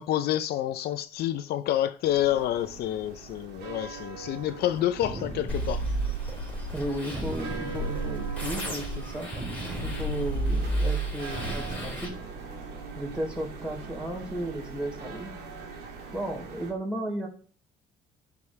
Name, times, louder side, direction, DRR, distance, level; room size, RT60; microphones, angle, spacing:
voice 1, 0.0-5.8, left 12 dB, 70° left, 0.6 m, -28 dB
sound 1, 2.0-16.7, right 4 dB, 75° right, 2.1 m, -42 dB
sound 2, 5.0-5.9 7.1-8.1 9.3-10.3 11.3-12.2, right 2 dB, 35° right, 2.9 m, -39 dB
sound 3, 5.5-12.1, right 2 dB, 10° left, 3.5 m, -31 dB
voice 2, 6.7-9.3 9.8-12.1 13.0-15.3 16.1-17.3, right 1 dB, 5° right, 3.8 m, -34 dB
10.5 x 5.4 x 3.2 m
cardioid pair, 110°, 17 cm